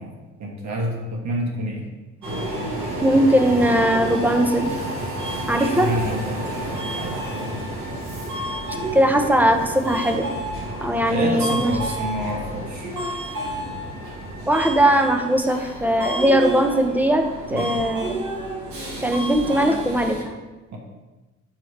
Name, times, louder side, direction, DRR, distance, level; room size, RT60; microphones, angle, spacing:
voice 1, 0.0-1.9 5.6-7.6 11.1-12.9 17.5-17.8 20.7-20.8, right 1 dB, 65° right, 0 dB, 1.4 m, -29 dB
Subway metro underground, 2.2-20.2, right 1 dB, 80° right, 1.6 m, -30 dB
voice 2, 3.0-4.7 5.5-5.9 8.9-10.3 10.8-11.7 14.5-18.2 19.0-20.3, right 1 dB, 5° right, 4 dB, 0.6 m, -19 dB
6.4 x 4.6 x 3.3 m, 1.2 s
cardioid pair, 90°, 30 cm